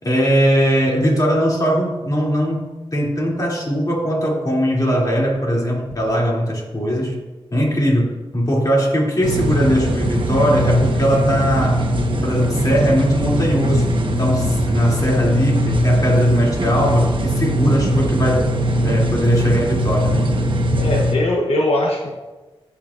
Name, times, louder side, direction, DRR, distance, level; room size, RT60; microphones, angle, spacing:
voice 1, 0.0-7.2 7.5-11.9 12.2-18.5 18.8-20.3, equal, 35° left, -2 dB, 2.7 m, -19 dB
sound 1, 9.2-21.2, equal, 55° right, 1.1 m, -20 dB
voice 2, 20.8-22.1, left 1 dB, 80° left, -1 dB, 1.1 m, -20 dB
16.5 x 7.2 x 2.5 m, 1.2 s
wide cardioid pair, 75°, 10 cm